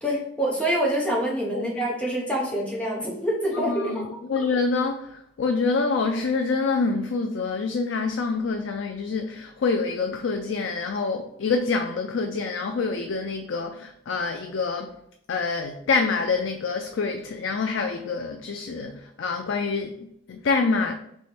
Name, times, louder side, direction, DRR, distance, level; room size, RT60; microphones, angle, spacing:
voice 1, 0.0-4.0, equal, 5° left, 0.8 m, -26 dB
voice 2, 3.5-14.9 15.3-20.9, left 4 dB, 75° left, 0.4 m, -26 dB
3.4 x 3.1 x 4.3 m
head